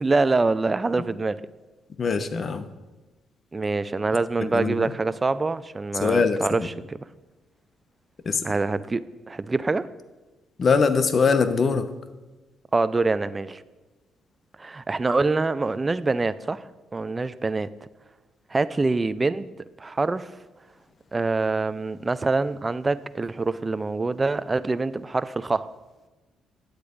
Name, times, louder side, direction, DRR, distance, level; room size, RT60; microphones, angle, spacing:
voice 1, 0.0-1.4 3.5-7.0 8.4-9.9 12.7-13.6 14.6-16.7 16.9-17.7 18.5-19.5 19.8-20.3 21.1-25.7, right 3 dB, 25° right, 0.4 m, -25 dB
voice 2, 2.0-2.7 4.4-4.9 6.0-6.7 8.3-8.5 10.6-11.9, left 5 dB, 45° left, 0.9 m, -22 dB
10.5 x 8.1 x 5.1 m
cardioid pair, 90°, 0 cm